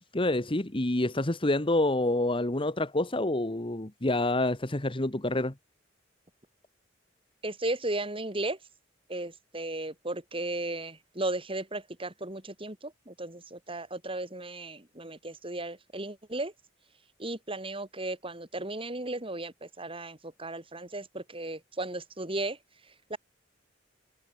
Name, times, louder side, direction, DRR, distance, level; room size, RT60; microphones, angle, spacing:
voice 1, 0.1-5.5, left 2 dB, 30° left, 1.5 m, -27 dB
voice 2, 7.4-8.6 9.1-16.5 17.2-22.6 23.1-23.2, right 2 dB, 30° right, 8.0 m, -35 dB
head